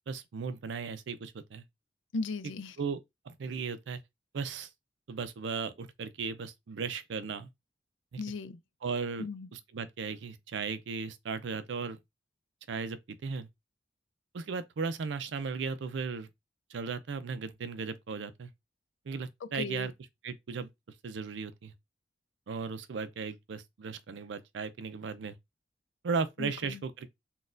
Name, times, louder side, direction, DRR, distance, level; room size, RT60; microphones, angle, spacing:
voice 1, 0.1-1.6 2.8-3.0 3.3-4.0 4.3-4.7 5.1-7.5 8.1-8.2 8.8-9.3 9.5-12.0 12.7-13.5 14.3-16.3 16.7-18.5 19.1-19.9 20.2-20.7 21.0-21.7 22.5-25.4 26.0-27.1, right 5 dB, 70° right, 0.4 m, -36 dB
voice 2, 2.1-2.8 8.2-8.6 9.2-9.5 19.4-19.9 26.4-26.8, left 3 dB, 80° left, 0.4 m, -37 dB
3.9 x 2.3 x 2.5 m
head